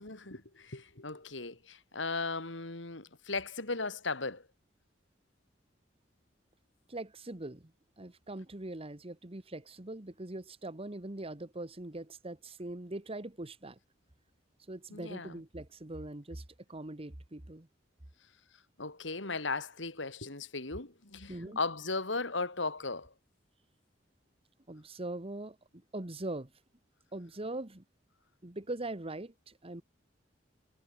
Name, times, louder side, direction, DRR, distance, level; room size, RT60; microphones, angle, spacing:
voice 1, 0.0-4.4 14.9-15.4 18.8-23.1, left 3 dB, 75° left, 3.6 m, -37 dB
voice 2, 6.9-7.7 8.0-13.8 14.7-16.4 16.7-17.7 21.3-21.6 24.7-25.6 25.9-26.5 27.1-27.8 28.4-29.8, right 2 dB, 30° right, 1.5 m, -41 dB
head